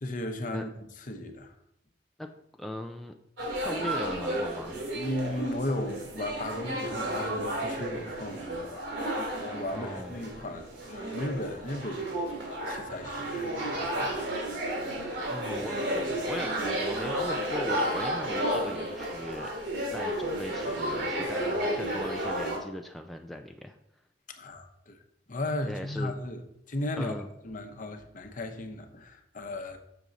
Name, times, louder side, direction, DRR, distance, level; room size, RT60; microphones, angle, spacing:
voice 1, 0.0-0.7 1.0-1.5 4.9-12.1 12.7-14.5 24.3-25.0 25.3-27.1 27.4-29.8, left 1 dB, 45° left, 0.9 m, -36 dB
voice 2, 2.2-3.1 3.6-4.9 9.7-10.2 15.3-19.5 19.9-23.8 25.7-26.1 26.9-27.3, left 1 dB, ahead, 0.4 m, -39 dB
sound 1, 3.4-22.6, right 1 dB, 85° right, 2.6 m, -32 dB
6.9 x 6.1 x 3.9 m
head